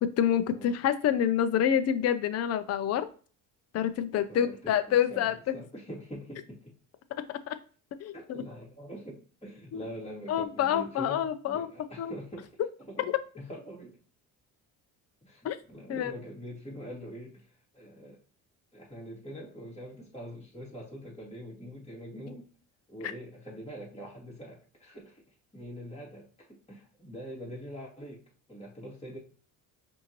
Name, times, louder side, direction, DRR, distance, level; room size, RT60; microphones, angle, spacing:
voice 1, 0.0-3.1 3.7-5.5 7.5-7.6 8.0-8.1 9.7-9.8 10.3-11.7 12.0-12.1 15.4-15.6 15.9-16.1, left 9 dB, 45° left, 10 dB, 0.6 m, -27 dB
voice 2, 4.3-6.7 8.1-12.6 12.9-14.0 15.2-18.2 18.7-22.5 22.9-25.2 25.5-28.2 28.5-29.2, equal, 15° left, -4 dB, 2.3 m, -44 dB
5.4 x 2.7 x 3.0 m, 0.39 s
cardioid pair, 95°, 36 cm